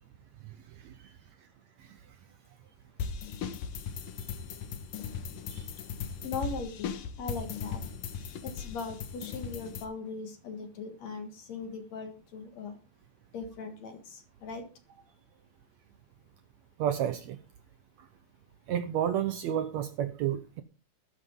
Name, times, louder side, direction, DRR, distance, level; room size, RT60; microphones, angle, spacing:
sound 1, 3.0-9.8, left 6 dB, 90° left, 3.1 m, -38 dB
voice 1, 6.2-7.8 8.4-12.8 13.3-14.6, left 4 dB, 60° left, 7 dB, 2.7 m, -39 dB
voice 2, 16.8-17.4 18.7-20.6, right 10 dB, 70° right, 10 dB, 1.9 m, -30 dB
14.0 x 12.5 x 3.7 m, 0.32 s
omnidirectional pair, 3.7 m